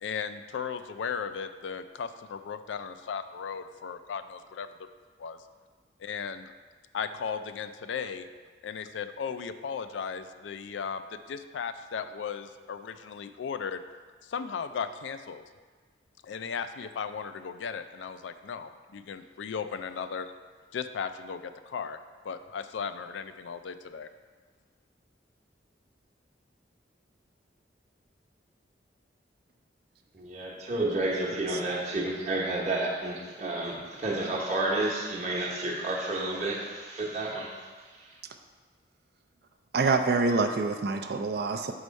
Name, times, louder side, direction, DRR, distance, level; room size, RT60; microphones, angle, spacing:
voice 1, 0.0-4.7 5.2-5.4 6.0-6.5 6.9-8.3 8.6-13.8 14.2-15.4 16.2-20.3 20.7-22.0 22.2-24.1, left 6 dB, 80° left, 10 dB, 0.4 m, -36 dB
voice 2, 30.1-37.6, right 2 dB, 40° right, -4 dB, 1.0 m, -30 dB
voice 3, 39.7-41.7, right 3 dB, 55° right, 6 dB, 0.4 m, -26 dB
5.4 x 4.7 x 5.2 m, 1.5 s
head